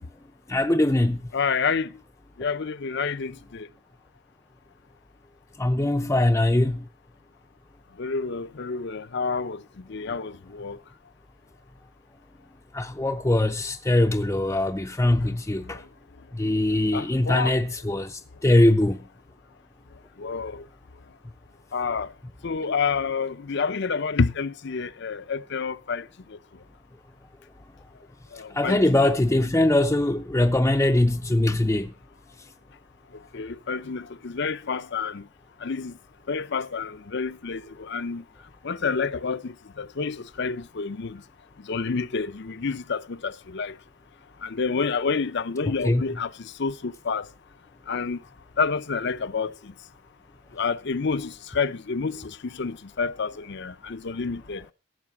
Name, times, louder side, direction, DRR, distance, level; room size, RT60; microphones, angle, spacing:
voice 1, 0.5-1.2 5.6-6.9 12.7-15.8 16.3-19.0 28.5-31.9 45.8-46.0, left 1 dB, 15° left, 0.6 m, -22 dB
voice 2, 1.3-1.9 2.4-3.7 8.0-9.6 9.9-10.8 15.1-15.3 16.9-17.6 20.2-20.6 21.7-22.1 22.4-26.0 26.3-26.4 28.3-28.8 33.3-35.2 35.6-36.0 36.3-38.2 38.6-41.2 41.7-43.7 44.4-47.3 47.9-48.2 48.6-49.7 50.5-54.6, left 5 dB, 60° left, 0.7 m, -29 dB
16.0 x 8.1 x 5.9 m
head